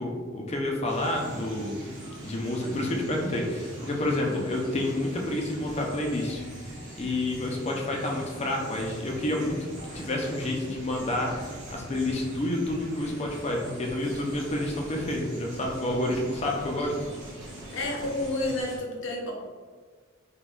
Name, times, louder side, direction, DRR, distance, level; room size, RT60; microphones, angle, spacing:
voice 1, 0.0-1.7 2.2-6.4 7.0-9.6 9.9-11.5 11.7-17.0, left 1 dB, 35° left, 0 dB, 0.5 m, -29 dB
sound 1, 0.6-7.8 8.8-10.5 10.7-15.2 15.5-18.6, equal, 45° right, 1.2 m, -46 dB
sound 2, 0.9-18.8, right 1 dB, 85° right, 1.3 m, -43 dB
voice 2, 17.7-19.3, left 1 dB, 70° left, -2 dB, 0.7 m, -30 dB
4.2 x 2.3 x 2.3 m, 1.5 s
head